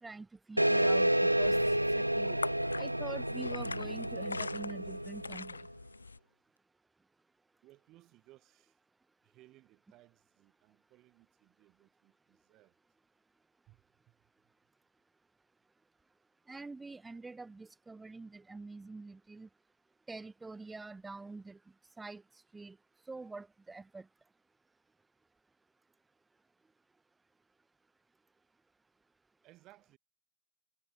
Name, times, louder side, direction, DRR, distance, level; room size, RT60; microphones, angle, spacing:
voice 1, 0.0-1.6 1.9-2.4 2.7-5.6 16.5-19.5 20.1-21.6 22.0-22.2 22.5-22.8 23.1-24.1, right 3 dB, 10° right, 0.6 m, -46 dB
sound 1, 0.6-5.6, right 1 dB, 90° right, 0.4 m, -30 dB
sound 2, 1.1-6.2, left 4 dB, 80° left, 0.7 m, -43 dB
voice 2, 7.6-8.8 9.2-12.7 13.7-14.2 29.4-30.0, right 17 dB, 35° right, 5.2 m, -63 dB
figure-of-eight pair, 90°, 0 cm